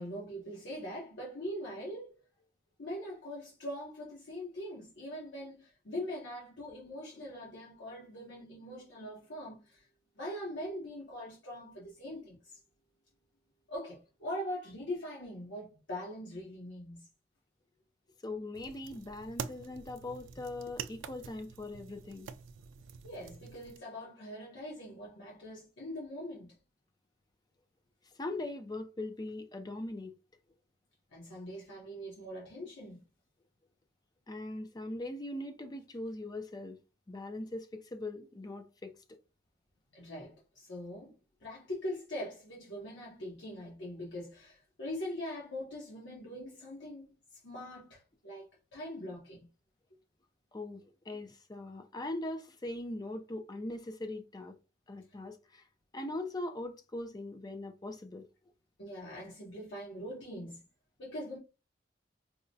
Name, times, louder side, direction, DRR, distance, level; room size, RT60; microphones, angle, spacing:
voice 1, 0.0-2.1 2.8-9.9 10.2-12.6 13.7-17.1 23.0-26.5 31.1-33.0 39.9-41.1 41.4-49.5 58.8-60.6 61.0-61.4, left 1 dB, 70° left, 0.9 m, -42 dB
voice 2, 18.2-22.3 28.2-30.1 34.3-36.8 37.1-39.0 50.5-54.6 54.9-55.7 55.9-58.3, left 2 dB, 20° left, 0.4 m, -41 dB
sound 1, 18.5-23.8, right 7 dB, 80° right, 0.3 m, -46 dB
4.8 x 2.1 x 2.6 m
head